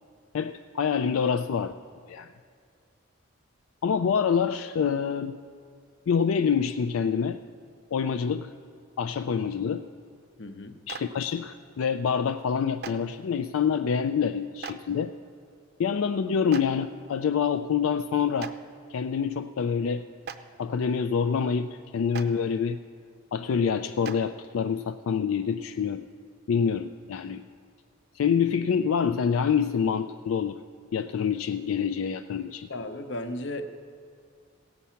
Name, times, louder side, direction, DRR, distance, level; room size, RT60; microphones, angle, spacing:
voice 1, 0.3-1.7 2.1-2.3 3.8-5.4 6.1-7.4 7.9-8.5 9.0-9.8 10.9-15.1 15.8-18.5 18.9-20.0 20.6-22.8 23.3-26.0 26.5-27.4 28.1-30.6 30.9-32.7, left 6 dB, 80° left, 9 dB, 0.4 m, -26 dB
voice 2, 10.4-10.8 32.7-33.7, left 1 dB, 55° left, 8 dB, 0.7 m, -35 dB
Clapping, 10.9-11.0 12.8-12.9 14.6-14.7 16.5-16.6 18.4-18.5 20.2-20.3 22.1-22.2 24.0-24.1, right 6 dB, 50° right, 0.5 m, -36 dB
16.5 x 8.3 x 5.7 m, 2.2 s
head